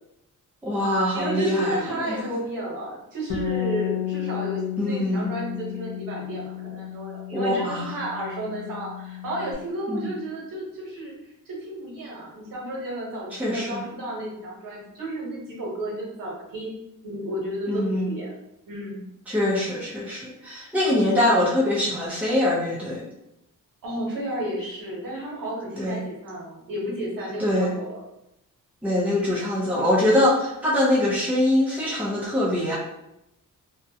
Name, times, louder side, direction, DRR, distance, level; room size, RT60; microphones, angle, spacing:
voice 1, 0.6-2.3 4.8-5.3 7.3-7.9 9.9-10.1 13.4-13.8 17.7-18.1 19.3-23.0 25.8-26.0 27.4-27.7 28.8-32.8, left 1 dB, 5° right, -6 dB, 0.6 m, -23 dB
voice 2, 1.1-11.1 11.5-16.8 17.0-18.3 18.7-19.0 23.8-28.0, right 1 dB, 80° right, -4 dB, 1.1 m, -32 dB
Bass guitar, 3.3-9.5, left 11 dB, 75° left, 0.8 m, -32 dB
2.5 x 2.1 x 2.7 m, 0.84 s
wide cardioid pair, 165°, 33 cm